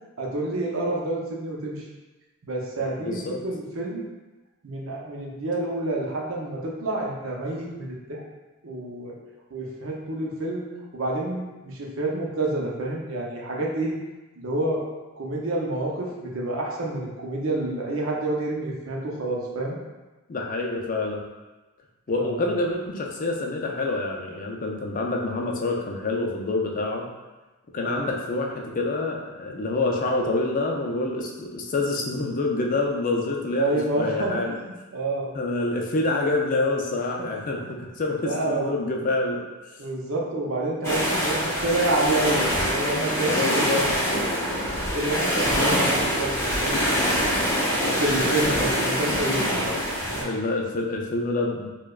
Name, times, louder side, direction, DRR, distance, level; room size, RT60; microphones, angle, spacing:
voice 1, 0.2-1.9 2.4-4.1 4.6-8.2 8.6-9.1 9.5-10.7 10.9-13.9 14.4-14.8 15.2-19.8 22.2-22.5 27.8-28.1 33.5-35.3 37.2-37.3 37.6-37.7 38.2-38.8 39.8-43.7 44.0-44.2 44.9-46.9 48.0-49.5 50.1-50.4, right 2 dB, 65° right, -2 dB, 0.6 m, -28 dB
voice 2, 3.0-3.4 20.3-21.2 22.1-27.1 27.7-34.6 35.3-39.4 43.4-43.9 48.2-48.7 49.5-49.9 50.2-51.7, left 2 dB, 40° left, 0 dB, 0.4 m, -27 dB
sound 1, 40.8-50.2, equal, 15° left, 0.9 m, -24 dB
4.6 x 2.2 x 2.3 m, 1.1 s
head